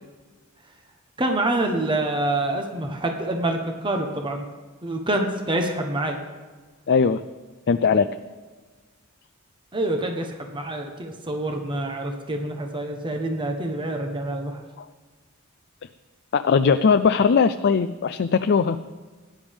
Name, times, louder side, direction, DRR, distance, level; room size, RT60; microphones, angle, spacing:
voice 1, 1.2-4.4 4.8-6.2 9.7-14.6, right 1 dB, 20° right, 3 dB, 1.1 m, -26 dB
voice 2, 6.9-7.2 7.7-8.1 14.8-14.9 16.3-18.8, left 5 dB, 50° left, 10 dB, 0.4 m, -19 dB
18.0 x 10.5 x 3.6 m, 1.4 s
head